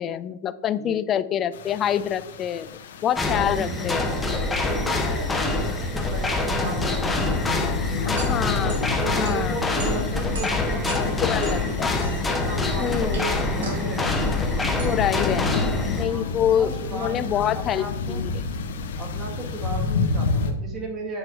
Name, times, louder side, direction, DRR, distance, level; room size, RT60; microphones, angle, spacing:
voice 1, 0.0-4.1 8.1-8.8 9.1-9.6 11.3-11.9 12.8-13.2 14.8-15.6 15.9-18.2, left 9 dB, 25° left, 14 dB, 0.3 m, -26 dB
sound 1, 1.5-20.5, left 4 dB, 75° left, 0.9 m, -31 dB
voice 2, 3.1-8.2 8.6-11.8 12.2-14.6 15.2-15.5 16.1-18.2 19.0-21.2, right 2 dB, 25° right, 1 dB, 1.6 m, -35 dB
sound 2, 3.2-16.1, left 2 dB, 10° left, 0.8 m, -26 dB
sound 3, 8.1-16.8, right 3 dB, 80° right, 2.2 m, -42 dB
8.5 x 3.3 x 4.5 m, 0.87 s
hypercardioid pair, 140°, 0 cm